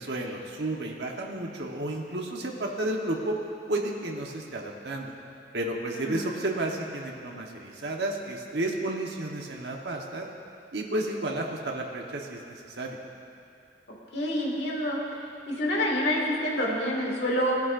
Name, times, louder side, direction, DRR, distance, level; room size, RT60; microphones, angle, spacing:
voice 1, 0.0-3.3 3.7-5.1 5.5-10.3 10.7-13.0, right 1 dB, 70° right, 1 dB, 1.1 m, -32 dB
voice 2, 5.9-6.3 14.1-15.0 15.5-17.6, equal, 65° left, -3 dB, 2.1 m, -27 dB
17.0 x 10.5 x 2.6 m, 2.7 s
head